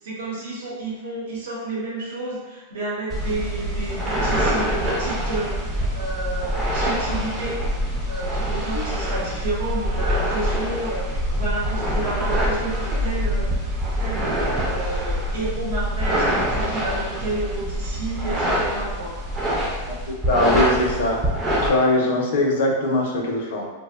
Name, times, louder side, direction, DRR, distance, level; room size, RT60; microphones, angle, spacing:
voice 1, 0.0-7.7 8.1-13.5 13.9-19.2, right 2 dB, 90° right, -5 dB, 0.9 m, -30 dB
sound 1, 3.1-21.7, equal, 15° right, 0.4 m, -25 dB
voice 2, 20.3-21.2 21.6-23.7, left 2 dB, 65° left, 0 dB, 0.5 m, -21 dB
2.6 x 2.0 x 2.3 m, 1.3 s
supercardioid pair, 165°, 0 cm